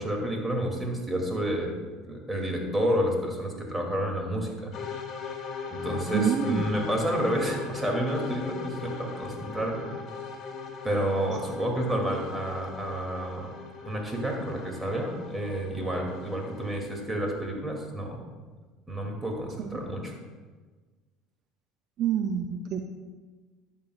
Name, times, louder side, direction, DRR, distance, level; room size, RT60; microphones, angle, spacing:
voice 1, 0.0-1.7 2.0-4.7 5.7-9.8 10.8-13.5 13.8-18.2 18.9-20.1, right 1 dB, 10° right, 0 dB, 2.6 m, -30 dB
sound 1, 4.7-16.8, left 5 dB, 45° left, 2.4 m, -39 dB
voice 2, 6.1-6.6 19.6-19.8 22.0-22.8, right 8 dB, 50° right, 5 dB, 0.6 m, -27 dB
13.0 x 8.5 x 2.4 m, 1.4 s
hypercardioid pair, 75°, 0 cm